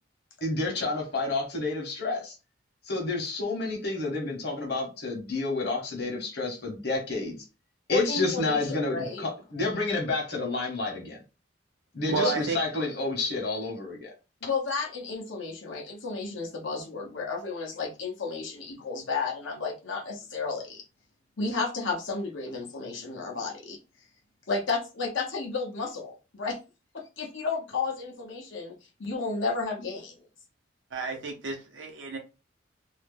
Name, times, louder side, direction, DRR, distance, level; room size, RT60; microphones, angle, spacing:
voice 1, 0.4-2.4 2.9-7.4 7.9-11.2 11.9-14.1, left 3 dB, 55° left, 1.1 m, -30 dB
voice 2, 7.9-9.2 12.2-12.3 14.4-20.8 21.4-23.8 24.5-26.6 26.9-28.7 29.0-30.2, left 4 dB, 90° left, 0.9 m, -32 dB
voice 3, 12.1-12.6 30.9-32.2, right 4 dB, 80° right, 0.6 m, -31 dB
2.7 x 2.1 x 3.3 m
head